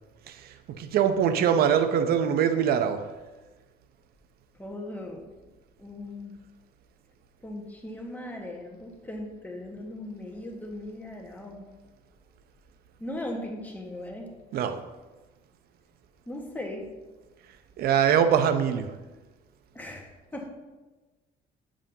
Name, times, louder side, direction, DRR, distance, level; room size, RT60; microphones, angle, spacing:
voice 1, 0.3-3.1 14.5-14.8 17.8-19.0, right 8 dB, 65° right, 0.6 m, -23 dB
voice 2, 4.6-5.5 5.8-6.4 7.4-11.6 13.0-14.3 16.3-16.8 19.7-20.5, left 1 dB, 10° left, 1.3 m, -38 dB
7.4 x 7.2 x 2.7 m
cardioid pair, 110°, 17 cm